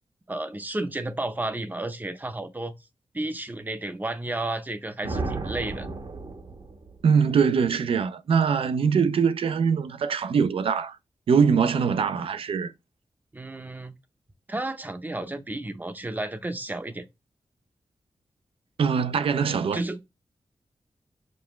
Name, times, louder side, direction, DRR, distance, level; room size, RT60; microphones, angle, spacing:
voice 1, 0.3-2.7 3.1-5.9 13.3-13.9 14.5-17.0 19.7-20.0, right 2 dB, 20° right, 0.6 m, -32 dB
sound 1, 5.0-7.0, right 3 dB, 65° right, 1.0 m, -33 dB
voice 2, 7.0-11.0 11.3-12.7 18.8-19.8, right 6 dB, 85° right, 0.4 m, -22 dB
5.2 x 2.2 x 3.0 m
wide cardioid pair, 110°, 9 cm